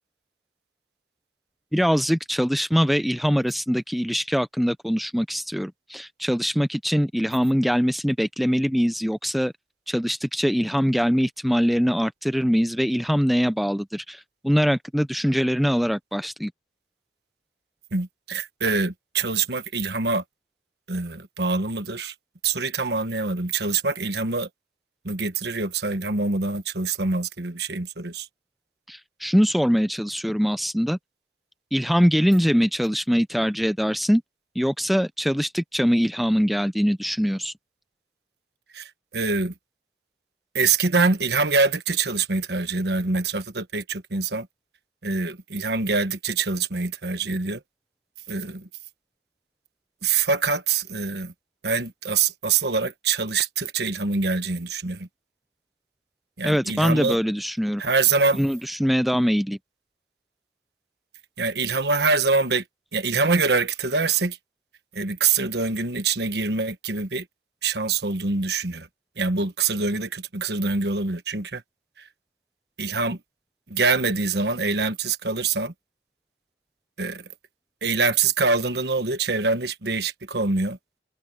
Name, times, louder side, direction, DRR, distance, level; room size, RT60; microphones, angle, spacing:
voice 1, 1.7-9.5 9.9-16.5 28.9-31.0 31.7-34.2 34.6-37.5 56.4-57.8 58.3-59.6, equal, ahead, 0.5 m, -23 dB
voice 2, 17.9-20.2 20.9-22.1 22.4-24.5 25.0-28.3 38.7-39.5 40.5-44.5 45.0-47.6 48.3-48.7 50.0-51.3 51.6-55.1 56.4-57.2 57.8-58.4 61.4-62.6 62.9-64.4 64.9-67.2 67.6-68.9 69.2-71.6 72.8-73.2 73.7-75.7 77.0-77.2 77.8-80.8, right 4 dB, 65° right, 1.3 m, -24 dB
head